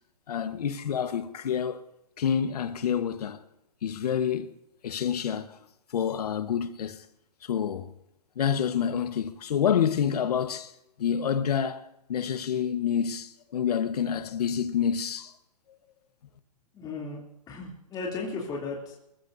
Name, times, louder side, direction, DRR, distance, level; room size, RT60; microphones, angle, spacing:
voice 1, 0.3-1.8 2.2-3.4 3.8-4.5 4.8-5.6 5.9-7.0 7.4-7.9 8.3-10.7 11.0-15.3, left 8 dB, 65° left, 1.3 m, -28 dB
voice 2, 16.7-17.2 17.5-19.0, left 3 dB, 20° left, 2.9 m, -35 dB
27.5 x 15.0 x 2.7 m
hypercardioid pair, 140°, 21 cm